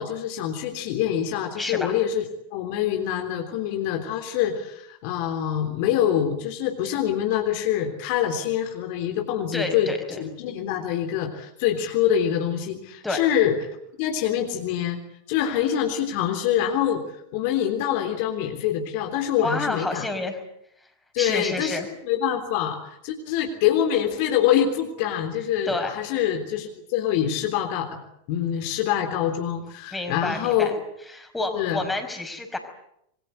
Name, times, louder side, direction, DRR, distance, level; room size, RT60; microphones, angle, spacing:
voice 1, 0.0-2.3 2.5-9.9 10.2-13.6 14.0-15.0 15.3-20.1 21.1-27.9 28.3-30.7 31.5-31.8, left 10 dB, 45° left, 4 dB, 3.5 m, -25 dB
voice 2, 1.6-1.9 9.5-10.2 13.0-13.2 19.4-20.4 21.2-21.9 25.7-25.9 29.9-30.7 31.1-32.6, left 2 dB, 5° left, 5 dB, 5.2 m, -29 dB
27.0 x 23.0 x 8.3 m, 0.76 s
figure-of-eight pair, 90°, 0 cm